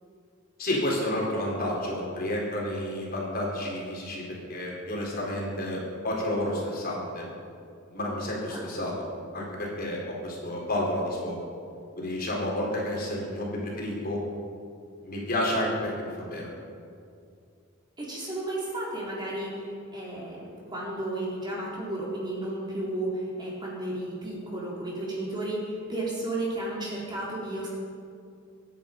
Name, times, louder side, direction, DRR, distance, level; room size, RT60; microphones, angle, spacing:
voice 1, 0.6-4.2 4.5-7.3 7.9-8.9 9.3-11.4 12.0-14.2 15.0-16.5, left 1 dB, 45° left, -3 dB, 4.3 m, -30 dB
voice 2, 18.0-19.6 19.9-27.7, right 1 dB, 20° right, -5 dB, 4.2 m, -33 dB
26.0 x 10.5 x 5.4 m, 2.4 s
head